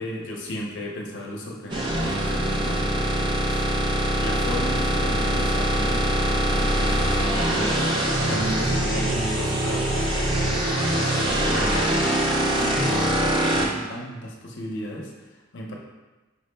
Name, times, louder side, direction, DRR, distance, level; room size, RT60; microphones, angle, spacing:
voice 1, 0.0-3.6 4.2-15.7, equal, 55° left, -1 dB, 0.7 m, -35 dB
sound 1, 1.7-13.7, right 1 dB, 20° right, 0.5 m, -23 dB
5.8 x 2.0 x 3.2 m, 1.2 s
head